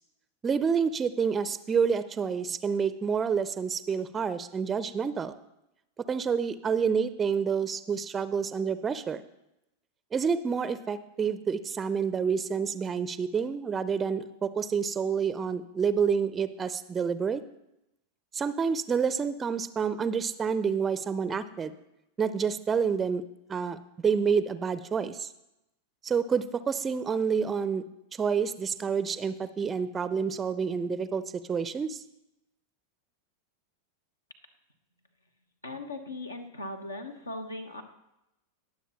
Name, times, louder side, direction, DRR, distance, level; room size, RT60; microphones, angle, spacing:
voice 1, 0.4-5.3 6.1-9.2 10.1-17.4 18.3-21.7 22.2-23.2 23.5-25.3 26.0-27.8 28.2-31.2 31.5-32.0, right 6 dB, 20° right, 14 dB, 0.5 m, -28 dB
voice 2, 35.6-37.8, left 2 dB, 75° left, 6 dB, 1.1 m, -38 dB
20.0 x 7.1 x 2.9 m, 0.88 s
figure-of-eight pair, 90°, 0 cm